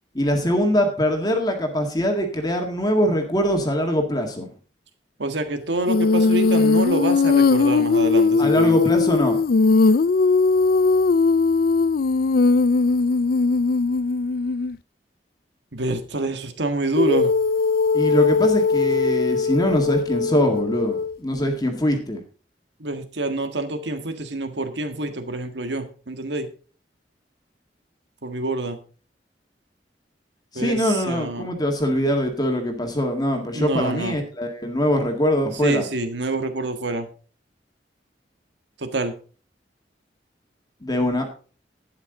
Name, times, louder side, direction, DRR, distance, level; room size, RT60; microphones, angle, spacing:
voice 1, 0.1-4.5 8.4-9.4 17.9-22.2 30.5-35.9 40.8-41.3, equal, 20° left, 3 dB, 1.9 m, -22 dB
voice 2, 5.2-8.8 15.7-17.3 22.8-26.5 28.2-28.8 30.5-31.5 33.5-34.2 35.6-37.1 38.8-39.1, right 2 dB, 85° right, 8 dB, 1.7 m, -27 dB
Female singing, 5.9-14.8 17.0-21.2, left 4 dB, 55° left, 0.4 m, -19 dB
12.0 x 9.7 x 3.9 m, 0.38 s
head